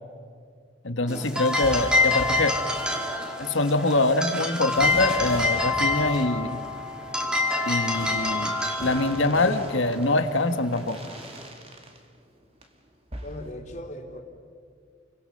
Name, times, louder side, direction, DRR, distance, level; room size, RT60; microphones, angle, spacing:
voice 1, 0.8-2.6 3.4-6.6 7.6-8.5 8.8-10.9, left 2 dB, 80° left, 8 dB, 1.6 m, -24 dB
sound 1, 1.1-11.5, left 2 dB, 5° right, 2.6 m, -27 dB
sound 2, 1.6-2.9 4.8-12.0 12.4-12.8 13.1-13.5, right 1 dB, 30° right, 2.5 m, -40 dB
voice 2, 13.2-14.2, left 1 dB, 40° left, 2 dB, 3.2 m, -38 dB
29.5 x 24.0 x 6.7 m, 2.2 s
head